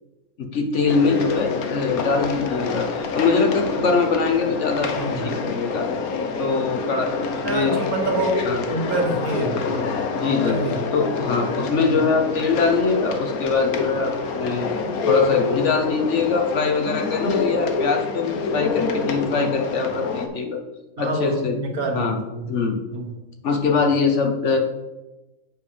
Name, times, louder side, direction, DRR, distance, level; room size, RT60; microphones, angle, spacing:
voice 1, 0.4-5.9 6.4-7.8 8.4-8.6 10.1-10.6 10.9-14.7 15.1-20.6 21.0-21.6 21.9-22.2 22.5-22.8 23.4-24.6, left 4 dB, 55° left, 4 dB, 1.3 m, -22 dB
sound 1, 0.9-20.3, left 4 dB, 85° left, 1.3 m, -27 dB
voice 2, 5.0-5.4 7.4-8.4 8.7-9.9 10.4-10.8 11.9-12.0 19.3-19.5 21.0-22.5 22.9-23.1, right 2 dB, 80° right, 2 dB, 1.9 m, -27 dB
7.6 x 5.3 x 5.1 m, 1.0 s
omnidirectional pair, 1.5 m